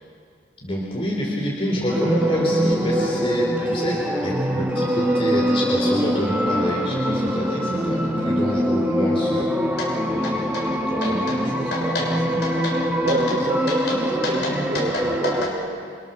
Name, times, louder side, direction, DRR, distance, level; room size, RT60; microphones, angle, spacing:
voice 1, 0.6-9.5 10.1-12.4, equal, 30° left, -3 dB, 4.3 m, -28 dB
sound 1, 1.9-15.5, equal, 10° right, 1.9 m, -23 dB
sound 2, 9.8-9.9 10.2-10.7 11.0-11.4 11.7-12.1 12.4-12.8 13.1-13.4 13.7-15.5, left 2 dB, 65° left, 6.5 m, -29 dB
voice 2, 13.0-16.0, right 1 dB, 45° right, 3 dB, 4.0 m, -28 dB
28.5 x 28.0 x 7.1 m, 2.2 s
head